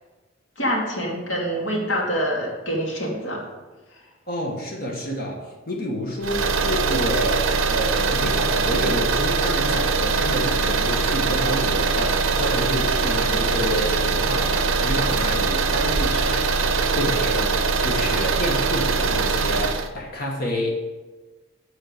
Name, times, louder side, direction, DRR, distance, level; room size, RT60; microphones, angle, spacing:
voice 1, 0.6-3.4 13.3-13.4, equal, 60° left, -3 dB, 2.6 m, -25 dB
voice 2, 4.3-20.8, left 1 dB, 45° left, -1 dB, 1.3 m, -29 dB
sound 1, 6.2-19.9, right 4 dB, 70° right, 0.7 m, -22 dB
9.5 x 4.7 x 6.5 m, 1.2 s
head